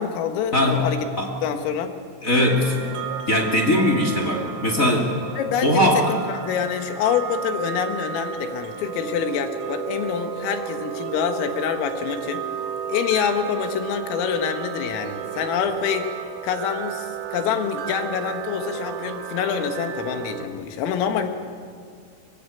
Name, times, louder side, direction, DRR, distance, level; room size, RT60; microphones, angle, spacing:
voice 1, 0.0-1.1 1.4-2.0 5.4-12.4 12.9-16.1 16.4-21.3, left 8 dB, 80° left, 6 dB, 4.1 m, -26 dB
voice 2, 0.5-0.9 1.2-1.3 2.2-2.9 3.3-5.1 5.6-6.0, left 1 dB, 40° left, 1 dB, 1.1 m, -20 dB
sound 1, 2.4-20.5, right 8 dB, 70° right, 3.4 m, -33 dB
24.0 x 22.5 x 8.4 m, 2.1 s
omnidirectional pair, 5.9 m